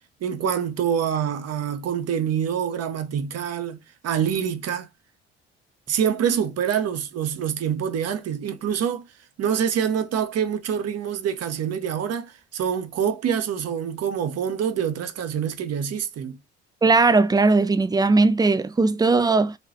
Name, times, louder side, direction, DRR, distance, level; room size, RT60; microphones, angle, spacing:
voice 1, 0.2-3.8 4.0-4.9 5.9-9.0 9.4-16.4, right 8 dB, 50° right, 1.0 m, -26 dB
voice 2, 16.8-19.5, right 3 dB, 10° right, 0.5 m, -18 dB
5.2 x 3.0 x 2.8 m
figure-of-eight pair, 50°, 33 cm